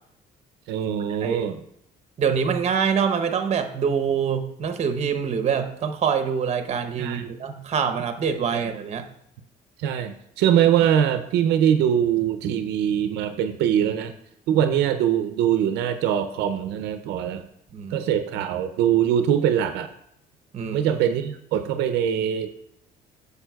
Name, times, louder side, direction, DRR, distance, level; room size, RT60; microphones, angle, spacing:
voice 1, 0.7-1.6 7.0-7.3 8.5-8.7 9.8-14.1 14.5-17.4 17.9-19.9 20.7-22.5, right 9 dB, 85° right, 9 dB, 0.5 m, -22 dB
voice 2, 2.2-9.1 17.7-18.0 20.5-20.8, right 6 dB, 40° right, 8 dB, 0.8 m, -25 dB
8.8 x 6.8 x 2.3 m, 0.74 s
cardioid pair, 110°, 17 cm